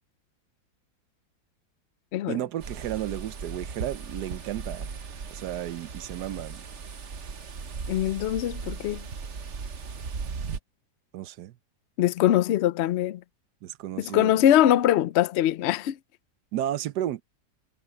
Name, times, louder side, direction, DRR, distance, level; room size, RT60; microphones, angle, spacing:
voice 1, 2.3-4.9 5.3-6.7 11.1-11.5 13.6-14.4 16.5-17.2, right 12 dB, 80° right, 1.3 m, -33 dB
sound 1, 2.6-10.6, right 5 dB, 50° right, 1.3 m, -37 dB
voice 2, 7.9-9.0 12.0-13.2 14.0-16.0, left 12 dB, 70° left, 0.6 m, -22 dB
omnidirectional pair, 1.8 m